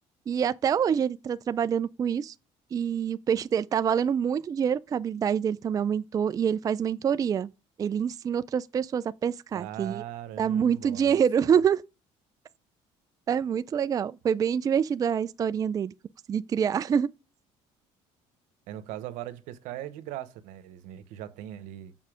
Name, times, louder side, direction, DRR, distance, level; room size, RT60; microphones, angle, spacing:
voice 1, 0.3-2.3 2.7-7.5 7.8-10.0 10.4-11.8 13.3-15.9 16.3-17.1, right 7 dB, 30° right, 0.4 m, -26 dB
voice 2, 9.5-11.6 18.7-22.0, right 12 dB, 80° right, 1.0 m, -40 dB
7.3 x 5.5 x 4.9 m
cardioid pair, 125°, 13 cm